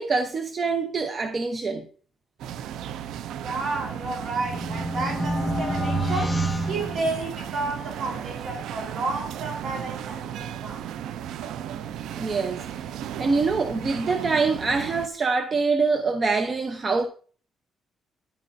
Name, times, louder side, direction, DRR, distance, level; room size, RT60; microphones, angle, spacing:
voice 1, 0.0-1.8 12.2-12.6 13.2-17.1, right 4 dB, 40° right, 0.8 m, -24 dB
sound 1, 2.4-15.1, right 9 dB, 85° right, 0.4 m, -35 dB
voice 2, 3.4-10.9, right 3 dB, 65° right, 3.8 m, -31 dB
sound 2, 3.7-7.7, right 1 dB, ahead, 1.3 m, -29 dB
10.5 x 9.1 x 2.6 m
cardioid pair, 90°, 0 cm